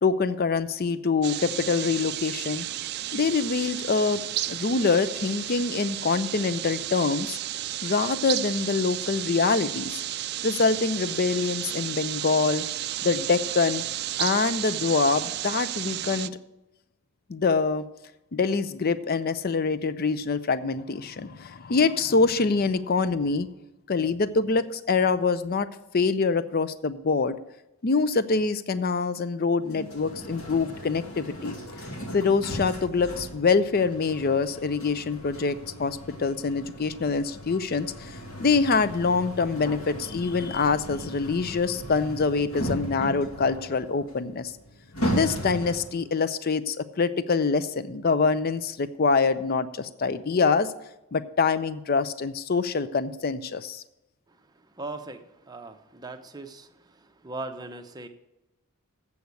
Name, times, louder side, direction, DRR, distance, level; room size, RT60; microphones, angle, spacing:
voice 1, 0.0-2.7 3.1-4.2 4.5-7.4 7.8-10.0 10.4-12.6 13.0-13.8 14.2-16.4 17.3-17.8 18.3-23.5 23.9-25.7 25.9-27.4 27.8-31.5 32.1-44.5 45.1-50.7 51.1-53.8, left 4 dB, 45° left, 14 dB, 0.5 m, -25 dB
sound 1, 1.2-16.3, right 13 dB, 50° right, 0.3 m, -32 dB
sound 2, 29.6-46.1, equal, 75° left, 2.4 m, -37 dB
voice 2, 54.8-56.7 57.2-58.1, right 2 dB, 20° right, 6 dB, 0.7 m, -38 dB
7.9 x 7.0 x 8.3 m, 0.95 s
head